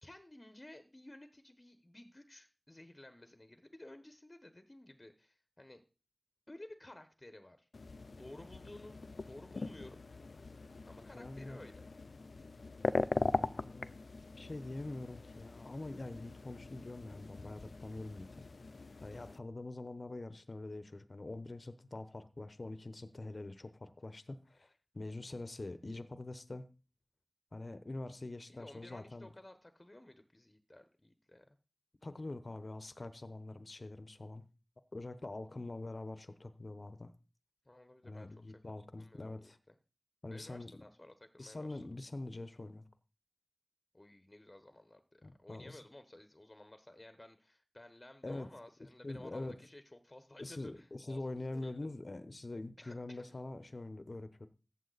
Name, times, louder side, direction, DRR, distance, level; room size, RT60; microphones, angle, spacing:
voice 1, 0.0-5.8 6.5-7.7 8.2-10.0 10.8-11.9 19.1-19.3 28.5-31.4 35.5-35.6 37.6-38.6 39.0-39.7 40.3-41.8 43.9-51.9 52.8-53.4, left 1 dB, 30° left, 1.2 m, -55 dB
sound 1, 7.7-19.4, left 3 dB, 85° left, 0.5 m, -41 dB
voice 2, 11.1-11.6 13.3-14.0 14.4-18.4 19.0-26.7 27.5-29.3 32.0-34.4 34.9-37.1 38.0-39.6 40.2-40.8 41.4-42.8 45.2-45.8 48.2-48.6 49.0-49.6 50.4-54.5, left 2 dB, 55° left, 1.0 m, -44 dB
14.5 x 9.1 x 4.1 m
wide cardioid pair, 55°, 0 cm